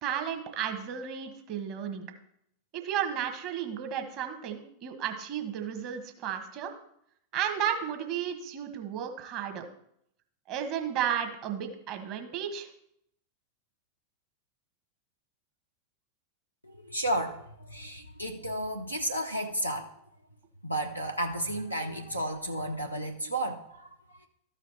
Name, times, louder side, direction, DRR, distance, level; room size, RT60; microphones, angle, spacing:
voice 1, 0.0-2.1 2.7-6.7 7.3-9.7 10.5-12.7, right 9 dB, 40° right, 6 dB, 1.3 m, -33 dB
voice 2, 16.6-19.9 20.6-24.3, right 1 dB, 90° right, 2 dB, 0.7 m, -33 dB
13.5 x 5.0 x 4.3 m, 0.73 s
figure-of-eight pair, 90°, 0 cm